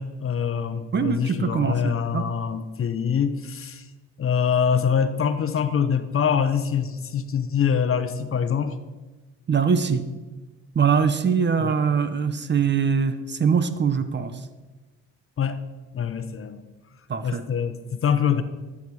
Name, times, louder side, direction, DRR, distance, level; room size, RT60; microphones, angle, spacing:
voice 1, 0.0-3.9 4.2-8.8 11.6-11.7 15.4-15.6 15.9-16.6 17.2-18.4, left 7 dB, 45° left, 11 dB, 0.9 m, -24 dB
voice 2, 0.9-2.3 9.5-10.0 10.7-14.4 17.1-17.4, right 6 dB, 35° right, 11 dB, 0.9 m, -22 dB
13.0 x 7.3 x 4.8 m, 1.2 s
cardioid pair, 90°, 30 cm